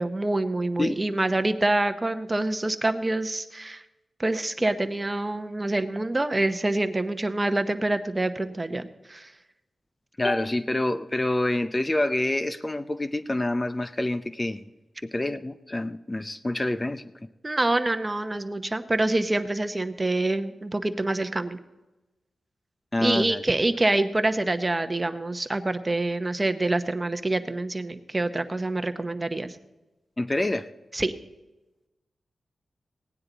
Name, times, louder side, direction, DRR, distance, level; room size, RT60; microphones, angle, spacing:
voice 1, 0.0-3.8 4.2-9.3 17.4-21.6 23.0-29.6 30.9-31.1, right 2 dB, 25° right, 0.9 m, -26 dB
voice 2, 10.2-14.7 15.0-17.1 22.9-23.4 30.2-30.7, left 1 dB, 25° left, 0.5 m, -27 dB
17.5 x 9.6 x 4.0 m
cardioid pair, 60°, 0 cm